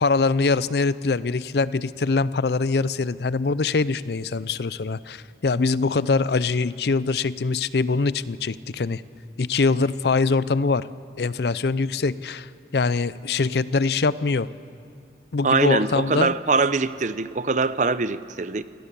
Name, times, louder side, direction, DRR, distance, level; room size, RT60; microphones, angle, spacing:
voice 1, 0.0-9.0 9.4-10.9 11.2-14.5 15.3-16.3, left 4 dB, 65° left, 17 dB, 0.5 m, -23 dB
voice 2, 15.4-18.6, right 4 dB, 45° right, 15 dB, 0.6 m, -23 dB
27.5 x 17.5 x 6.9 m, 2.4 s
head